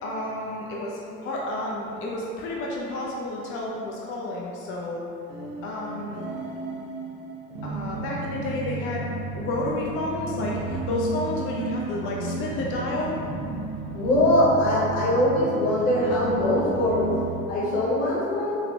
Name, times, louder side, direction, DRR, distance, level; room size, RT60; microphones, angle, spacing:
voice 1, 0.0-5.0 5.6-6.3 7.6-9.1 9.3-13.2, left 2 dB, 30° left, -3 dB, 0.5 m, -31 dB
sound 1, 5.3-17.4, right 2 dB, 65° right, 0.8 m, -33 dB
voice 2, 13.9-17.1 17.5-18.6, left 1 dB, 60° left, -6 dB, 1.1 m, -22 dB
3.9 x 3.1 x 2.8 m, 2.6 s
figure-of-eight pair, 60°, 43 cm